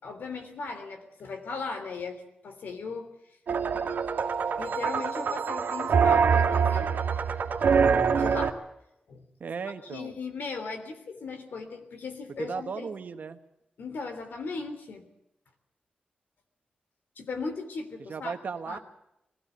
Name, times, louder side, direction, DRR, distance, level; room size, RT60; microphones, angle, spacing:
voice 1, 0.0-3.1 3.8-3.9 4.6-6.9 8.1-8.6 9.1-9.2 9.8-12.9 13.8-15.0 17.2-18.4 18.7-18.8, left 4 dB, 80° left, 7 dB, 3.3 m, -37 dB
sound 1, 3.5-8.5, right 6 dB, 80° right, 1.9 m, -24 dB
voice 2, 9.4-10.1 12.4-13.4 18.1-18.8, right 5 dB, 60° right, 8 dB, 1.4 m, -36 dB
21.5 x 16.5 x 8.2 m, 0.86 s
wide cardioid pair, 150°, 3 cm